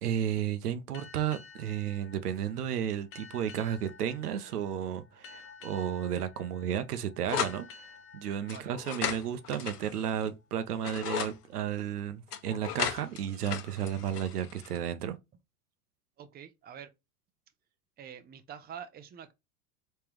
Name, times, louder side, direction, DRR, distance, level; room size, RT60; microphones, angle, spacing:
voice 1, 0.0-15.2, right 9 dB, 85° right, 0.8 m, -33 dB
sound 1, 0.9-10.1, left 5 dB, 30° left, 0.9 m, -53 dB
sound 2, 7.3-7.6 8.5-10.3 10.7-11.3 12.3-14.8, left 9 dB, 85° left, 0.9 m, -35 dB
voice 2, 16.2-16.9 18.0-19.3, right 8 dB, 20° right, 0.7 m, -46 dB
3.6 x 3.3 x 3.0 m
hypercardioid pair, 95°, 45 cm